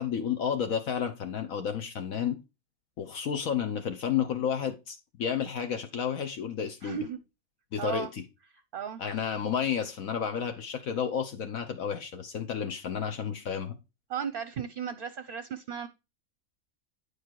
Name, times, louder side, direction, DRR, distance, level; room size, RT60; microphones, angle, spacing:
voice 1, 0.0-2.4 3.0-7.0 7.7-8.2 9.0-13.8, left 8 dB, 75° left, 1.3 m, -31 dB
voice 2, 6.8-7.2 7.8-8.1 8.7-9.0 14.1-15.9, right 7 dB, 50° right, 0.7 m, -35 dB
9.9 x 4.8 x 4.6 m
omnidirectional pair, 1.5 m